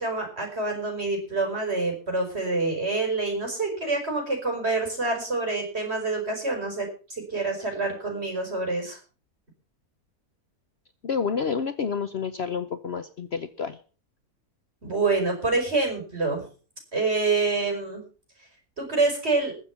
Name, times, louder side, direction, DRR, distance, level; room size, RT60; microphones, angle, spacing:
voice 1, 0.0-9.0 14.8-16.5 16.9-18.0 18.8-19.5, right 3 dB, 45° right, 3 dB, 5.5 m, -27 dB
voice 2, 11.0-13.8, left 6 dB, 50° left, 10 dB, 0.9 m, -29 dB
21.0 x 7.3 x 5.8 m, 0.38 s
omnidirectional pair, 1.6 m